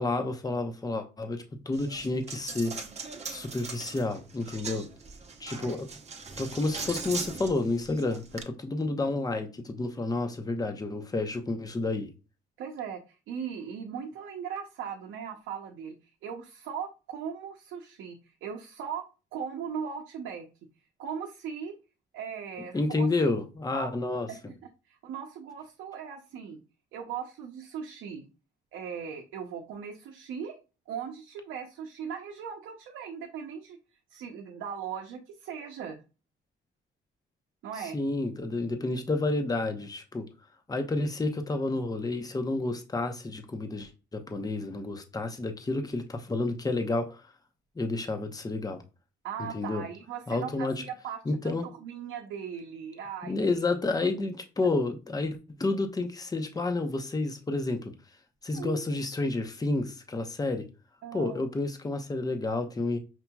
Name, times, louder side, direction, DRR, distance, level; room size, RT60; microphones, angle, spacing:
voice 1, 0.0-2.7 3.3-4.9 5.4-5.9 6.4-12.1 22.7-24.5 37.9-40.3 40.7-47.2 47.8-48.8 49.5-49.8 50.3-50.8 51.3-51.7 53.2-57.9 58.4-60.6 61.1-63.0, left 2 dB, 20° left, 0.7 m, -30 dB
Coin (dropping), 1.7-8.4, right 4 dB, 35° right, 0.8 m, -40 dB
voice 2, 12.6-16.0 16.2-19.0 19.3-20.5 21.0-21.7 22.1-23.1 23.7-23.9 24.3-24.4 24.9-26.6 26.9-28.3 28.7-30.6 30.9-33.8 34.1-36.0 37.6-38.0 49.2-53.3 54.0-54.1 54.6-54.7 58.5-58.8 61.0-61.4, right 7 dB, 85° right, 0.6 m, -38 dB
5.9 x 2.8 x 2.2 m
cardioid pair, 90°, 20 cm